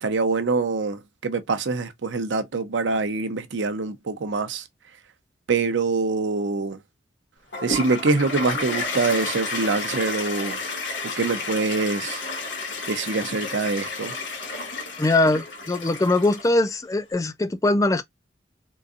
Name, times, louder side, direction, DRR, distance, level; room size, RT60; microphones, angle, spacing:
voice 1, 0.0-4.7 5.5-6.8 7.6-10.6 11.0-12.2 12.9-14.1, right 3 dB, 85° right, 0.6 m, -25 dB
Toilet flush, 7.5-16.7, left 3 dB, 80° left, 1.3 m, -31 dB
voice 2, 15.0-18.0, left 2 dB, 20° left, 0.4 m, -21 dB
3.8 x 2.5 x 2.4 m
head